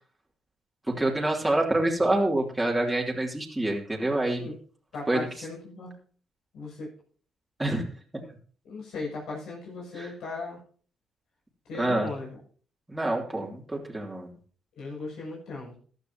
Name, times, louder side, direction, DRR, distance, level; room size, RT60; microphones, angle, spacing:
voice 1, 0.9-4.5 5.1-5.2 7.6-7.9 10.0-10.1 11.8-12.1 12.9-14.3, right 1 dB, 10° right, -1 dB, 3.0 m, -26 dB
voice 2, 4.9-6.0 6.5-6.9 8.7-10.6 11.7-12.4 14.8-15.8, left 3 dB, 75° left, -4 dB, 7.1 m, -37 dB
15.0 x 11.5 x 2.9 m, 0.43 s
cardioid pair, 90°, 0 cm